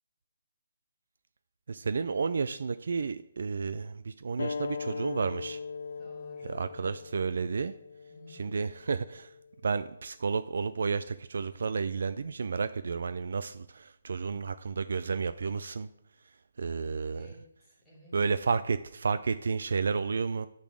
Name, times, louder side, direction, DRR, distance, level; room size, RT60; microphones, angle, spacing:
voice 1, 1.7-5.6 6.5-7.7 8.3-9.3 9.6-15.9 16.6-17.3 18.1-20.5, right 5 dB, 60° right, 13 dB, 0.4 m, -31 dB
sound 1, 4.4-9.5, left 5 dB, 60° left, 0.6 m, -40 dB
voice 2, 6.0-6.8 8.1-8.7 16.7-18.6, left 1 dB, 5° left, -5 dB, 2.9 m, -54 dB
10.5 x 4.2 x 7.6 m, 0.77 s
hypercardioid pair, 170°, 0 cm